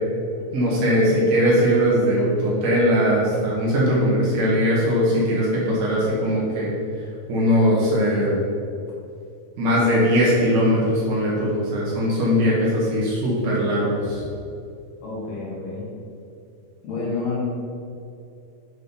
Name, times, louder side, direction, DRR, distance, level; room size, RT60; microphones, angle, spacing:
voice 1, 0.5-6.7 7.3-8.5 9.6-14.2, equal, 60° right, -6 dB, 3.1 m, -20 dB
voice 2, 15.0-15.9 16.8-17.4, left 4 dB, 65° left, -5 dB, 3.2 m, -29 dB
8.2 x 5.1 x 5.5 m, 2.5 s
omnidirectional pair, 4.5 m